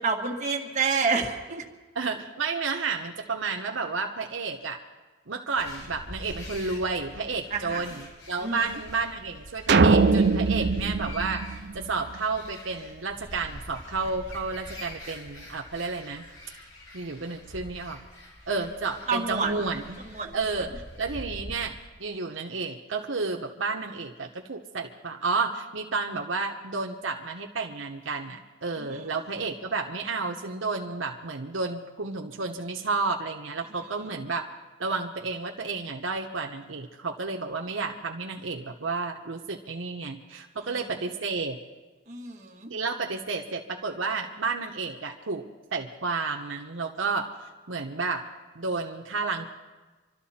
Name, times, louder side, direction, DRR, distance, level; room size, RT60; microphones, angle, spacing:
voice 1, 0.0-1.6 7.5-7.8 8.4-8.7 19.1-19.5 20.1-20.4 28.7-28.9 40.6-40.8 42.1-42.7, right 5 dB, 35° right, -1 dB, 1.9 m, -28 dB
voice 2, 1.9-4.8 5.3-16.2 16.9-18.0 18.5-20.0 20.3-20.7 21.0-34.5 34.8-41.6 42.7-45.4 45.7-47.3 47.7-48.2 48.5-49.5, right 4 dB, 75° right, 2 dB, 1.0 m, -31 dB
sound 1, 5.6-21.9, equal, 90° left, 4.7 m, -44 dB
sound 2, 9.7-12.2, right 4 dB, 55° right, 0.6 m, -22 dB
25.5 x 13.0 x 4.3 m, 1.3 s
head